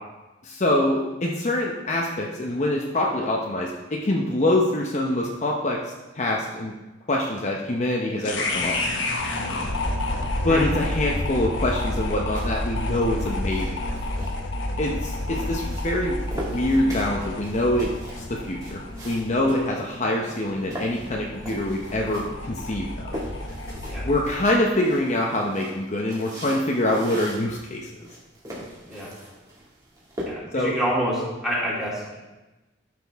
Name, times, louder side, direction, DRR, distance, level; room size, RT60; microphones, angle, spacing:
voice 1, 0.4-6.7 7.1-8.8 10.4-13.7 14.8-17.9 18.2-23.2 24.0-28.1 30.5-30.7, left 1 dB, 40° left, -1 dB, 0.8 m, -25 dB
sound 1, 8.2-24.4, left 1 dB, 85° left, 1.1 m, -30 dB
sound 2, 12.3-30.2, equal, 20° right, 2.2 m, -41 dB
voice 2, 30.2-31.2 31.4-32.2, equal, 5° right, -7 dB, 2.8 m, -27 dB
12.0 x 6.1 x 3.5 m, 1.1 s
head